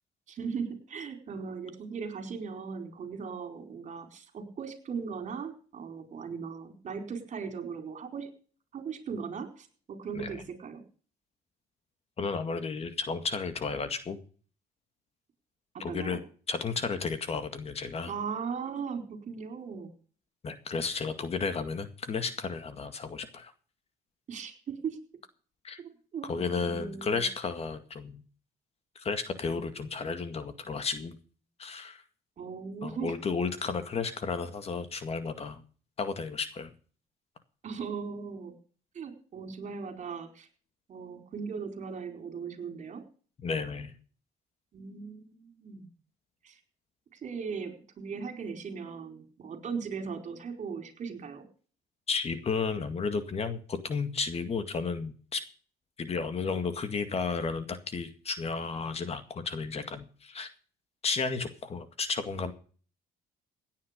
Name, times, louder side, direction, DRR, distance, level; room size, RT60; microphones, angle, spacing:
voice 1, 0.3-8.3 8.7-10.8 15.7-16.2 18.1-19.9 24.3-25.0 25.8-27.2 32.4-33.1 37.6-38.5 38.9-40.5 40.9-43.0 44.7-45.9 46.4-46.6 47.1-51.4, right 6 dB, 45° right, 6 dB, 4.8 m, -38 dB
voice 2, 12.2-14.2 15.8-16.2 16.5-18.1 20.4-23.5 25.6-25.8 26.2-28.2 29.0-31.2 31.6-32.0 32.8-35.6 36.0-36.7 43.4-43.9 52.1-55.4 56.0-60.5 61.0-62.5, left 5 dB, 35° left, 9 dB, 2.1 m, -33 dB
17.0 x 9.6 x 5.3 m, 0.42 s
cardioid pair, 110°, 17 cm